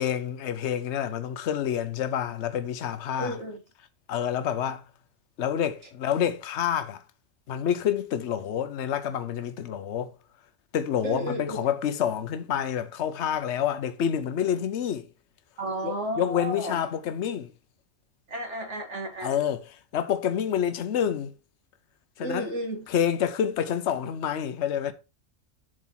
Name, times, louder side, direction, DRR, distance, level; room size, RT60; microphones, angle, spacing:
voice 1, 0.0-3.4 4.1-4.8 5.4-7.0 7.5-10.1 10.7-15.1 15.8-17.5 19.2-21.3 22.2-22.5 22.9-24.9, left 9 dB, 65° left, 1.1 m, -28 dB
voice 2, 3.2-3.6 11.0-11.6 15.6-16.8 18.3-19.4 22.2-22.9, right 1 dB, 60° right, 2.1 m, -32 dB
7.5 x 4.0 x 5.6 m
omnidirectional pair, 1.4 m